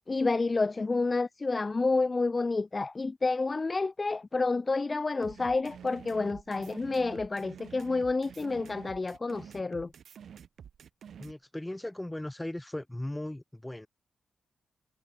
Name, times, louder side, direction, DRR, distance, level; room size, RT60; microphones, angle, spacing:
voice 1, 0.1-9.9, left 3 dB, 30° left, 0.6 m, -29 dB
sound 1, 5.2-11.3, right 8 dB, 75° right, 2.2 m, -48 dB
voice 2, 11.2-13.9, left 1 dB, 10° left, 4.7 m, -37 dB
wide cardioid pair, 130°, 0 cm